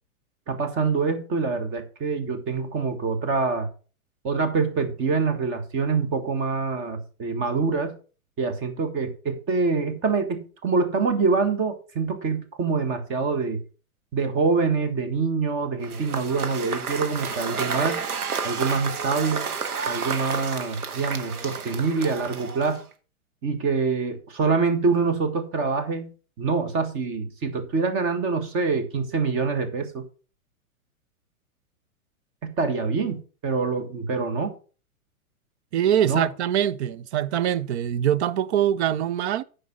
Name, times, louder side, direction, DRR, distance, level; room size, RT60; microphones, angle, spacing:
voice 1, 0.5-3.7 4.2-8.0 8.4-13.6 14.1-18.0 18.4-19.5 19.9-22.8 23.4-30.1 32.4-34.5 36.0-36.3, right 4 dB, 30° right, 1.7 m, -25 dB
Cheering / Applause / Crowd, 15.8-22.9, right 5 dB, 90° right, 1.6 m, -31 dB
voice 2, 35.7-39.4, right 10 dB, 50° right, 0.7 m, -23 dB
9.4 x 5.3 x 5.4 m
hypercardioid pair, 135°, 43 cm